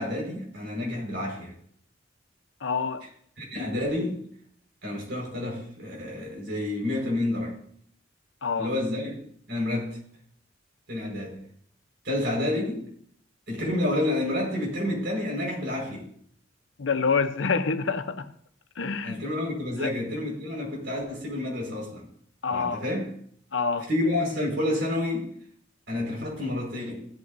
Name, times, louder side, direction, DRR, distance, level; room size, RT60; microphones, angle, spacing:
voice 1, 0.0-1.5 3.4-4.2 4.8-7.5 8.6-9.2 9.5-10.0 10.9-11.4 12.0-12.8 13.5-16.1 19.0-22.1 22.5-23.1 23.9-25.3 25.9-27.0, left 1 dB, 65° right, 5.0 m, -29 dB
voice 2, 2.6-3.1 8.4-8.7 16.8-18.3 18.8-19.2 19.8-19.9 22.4-22.8 23.5-23.9, left 5 dB, 85° left, 0.8 m, -27 dB
16.0 x 8.6 x 2.6 m
head